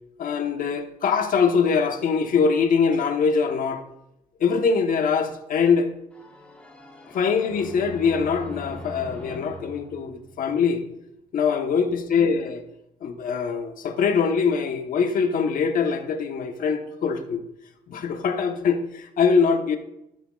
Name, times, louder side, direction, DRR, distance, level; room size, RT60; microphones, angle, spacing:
voice 1, 0.2-3.8 4.4-5.9 7.1-10.8 11.3-12.6 13.0-17.4 17.9-19.8, left 5 dB, 55° left, 1.2 m, -23 dB
sound 1, 6.1-10.9, left 1 dB, 5° left, 1.6 m, -41 dB
12.0 x 8.3 x 2.4 m
cardioid pair, 110°, 17 cm